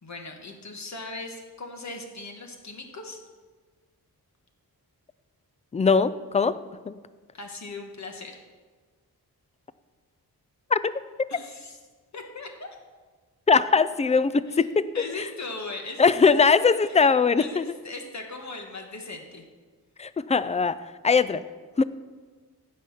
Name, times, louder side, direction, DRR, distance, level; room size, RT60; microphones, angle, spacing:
voice 1, 0.0-3.2 7.3-8.4 11.3-11.8 12.1-12.7 14.5-14.7 14.9-17.1 17.4-19.5, left 3 dB, 45° left, 3 dB, 1.6 m, -39 dB
voice 2, 5.7-6.6 6.9-7.0 10.7-11.0 13.5-14.9 16.0-17.6 20.0-20.8 21.0-21.4 21.8-21.9, left 5 dB, 20° left, 15 dB, 0.3 m, -21 dB
15.5 x 5.6 x 5.7 m, 1.4 s
wide cardioid pair, 125°, 38 cm